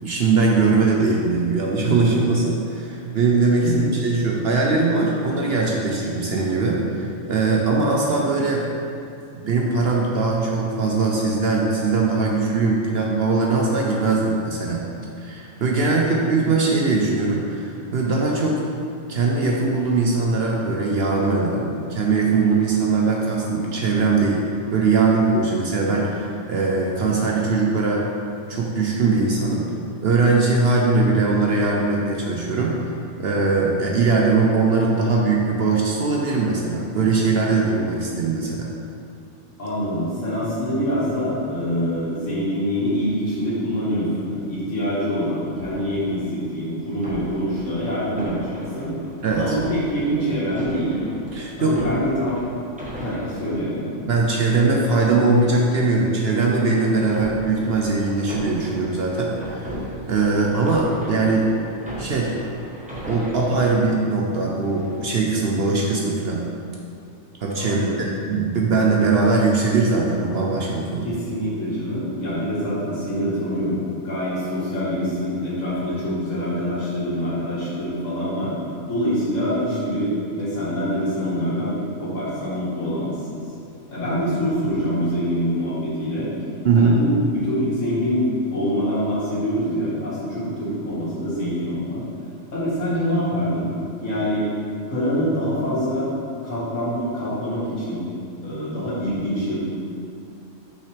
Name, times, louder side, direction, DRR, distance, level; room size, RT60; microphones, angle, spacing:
voice 1, 0.0-8.6 9.4-14.8 15.2-18.6 19.1-24.4 24.7-28.0 28.5-29.7 30.0-32.7 33.2-38.7 49.2-49.6 51.3-51.8 54.1-59.8 60.1-61.5 62.0-62.3 63.0-66.4 67.4-71.1 86.6-87.0, right 3 dB, 55° right, -2 dB, 0.8 m, -21 dB
voice 2, 39.6-48.9 49.4-51.0 51.6-52.5 53.0-53.9 67.6-67.9 71.0-78.6 78.9-83.4 83.9-86.3 86.7-92.0 92.5-93.7 94.0-94.5 94.9-96.1 96.4-98.0 98.4-99.6, equal, 65° left, -9 dB, 2.1 m, -25 dB
sound 1, 45.5-46.4 47.0-54.3 56.2-63.8 64.4-65.2, equal, 5° right, 0.8 m, -37 dB
6.1 x 5.7 x 3.3 m, 2.6 s
omnidirectional pair, 1.4 m